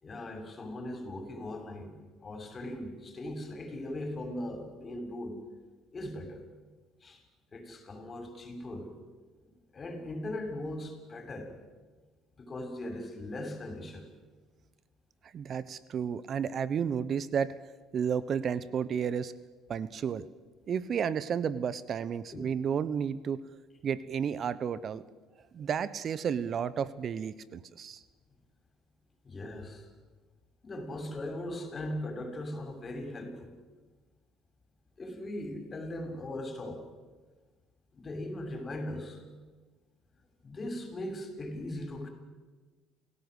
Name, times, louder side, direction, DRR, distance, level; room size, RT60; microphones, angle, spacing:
voice 1, 0.0-1.9 2.2-5.3 5.9-6.4 7.0-7.2 7.5-8.9 9.7-11.5 12.4-14.1 22.3-22.4 29.2-29.9 30.6-33.6 35.0-36.8 37.9-39.2 40.4-42.1, left 1 dB, 35° left, 5 dB, 6.6 m, -39 dB
voice 2, 15.3-17.5 17.9-19.3 19.7-20.3 20.7-23.4 23.8-25.0 25.5-28.0, right 7 dB, 50° right, 17 dB, 1.0 m, -32 dB
29.0 x 17.0 x 8.2 m, 1.3 s
hypercardioid pair, 60°, 0 cm